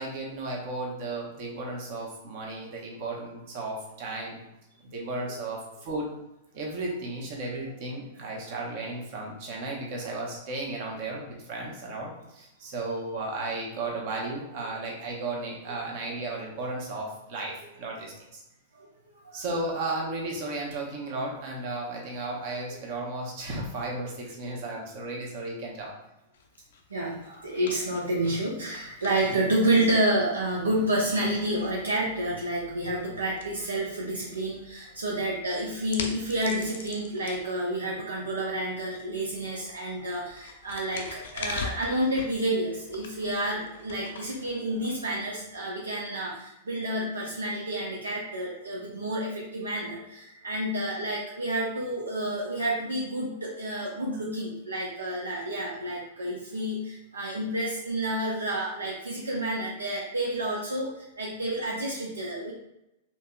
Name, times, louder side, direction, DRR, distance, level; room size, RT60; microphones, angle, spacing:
voice 1, 0.0-4.4 4.9-6.1 6.5-18.4 19.3-25.9, right 2 dB, 50° right, -1 dB, 1.0 m, -34 dB
sound 1, 26.3-45.6, left 5 dB, 65° left, 0.5 m, -44 dB
voice 2, 26.9-62.5, right 1 dB, 80° right, -4 dB, 0.6 m, -29 dB
4.3 x 2.9 x 2.2 m, 0.89 s
figure-of-eight pair, 95°, 0 cm